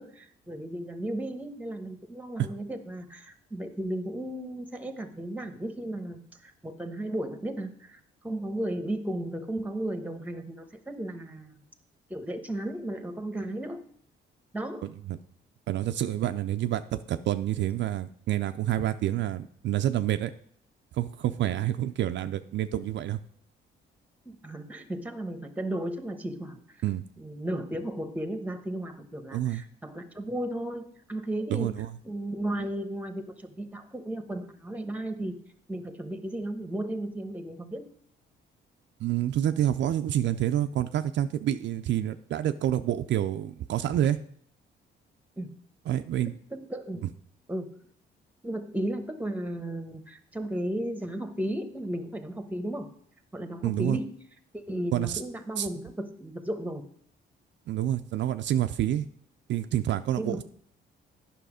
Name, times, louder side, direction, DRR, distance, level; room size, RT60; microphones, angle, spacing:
voice 1, 0.0-11.5 12.1-13.8 14.5-14.9 24.2-26.6 27.2-31.7 32.0-35.4 35.7-37.9 45.4-45.5 46.5-47.1 47.5-47.8 48.4-52.9 53.3-54.2 54.5-56.8 60.2-60.4, right 1 dB, 5° right, 9 dB, 1.0 m, -34 dB
voice 2, 15.7-20.3 20.9-23.2 26.8-27.0 29.3-29.6 31.5-31.9 39.0-44.2 45.9-46.3 53.6-54.0 54.9-55.2 55.6-55.7 57.7-59.1 59.5-60.4, right 12 dB, 65° right, 9 dB, 0.4 m, -28 dB
9.3 x 5.7 x 4.9 m, 0.63 s
cardioid pair, 90°, 20 cm